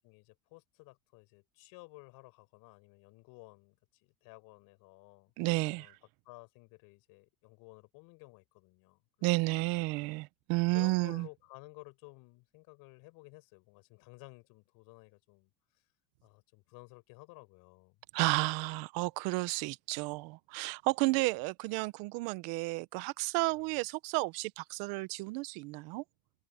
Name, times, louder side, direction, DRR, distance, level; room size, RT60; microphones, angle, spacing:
voice 1, 0.0-5.3 5.8-6.0 6.2-9.5 10.7-15.8 16.2-18.0 21.0-21.2 23.5-23.9, left 25 dB, 65° left, 6.0 m, -55 dB
voice 2, 5.4-5.9 9.2-11.3 18.1-26.0, right 23 dB, 65° right, 1.1 m, -32 dB
supercardioid pair, 135°, 38 cm